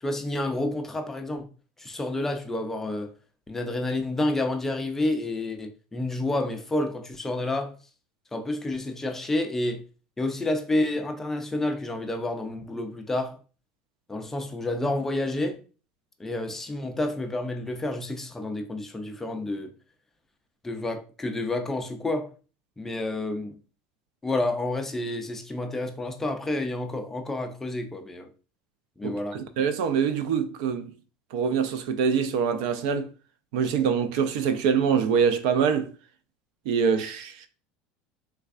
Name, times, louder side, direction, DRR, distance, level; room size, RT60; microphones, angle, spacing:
voice 1, 0.0-1.5 1.8-3.1 3.5-7.8 8.3-9.8 10.2-13.4 14.1-15.6 16.2-19.7 20.6-22.3 22.8-23.6 24.2-28.3 29.0-29.4, left 2 dB, 10° left, 0.3 m, -29 dB
voice 2, 29.0-30.9 31.3-33.1 33.5-35.9 36.7-37.5, right 6 dB, 70° right, 0.4 m, -24 dB
3.4 x 3.2 x 2.4 m
cardioid pair, 160°, 4 cm